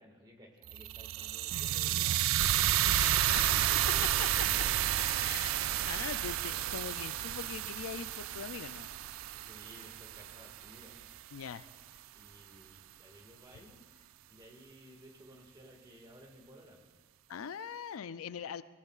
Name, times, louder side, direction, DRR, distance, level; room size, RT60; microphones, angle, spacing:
voice 1, 0.0-4.5 9.3-11.0 12.1-13.8 14.3-16.8, equal, 20° right, 1 dB, 1.9 m, -56 dB
sound 1, 0.7-10.8, right 12 dB, 70° right, 0.4 m, -31 dB
voice 2, 3.3-3.7 4.2-4.3 5.0-5.5 5.8-9.0 11.3-11.7 17.3-18.6, left 7 dB, 90° left, 14 dB, 0.4 m, -42 dB
18.5 x 17.0 x 2.4 m, 1.4 s
head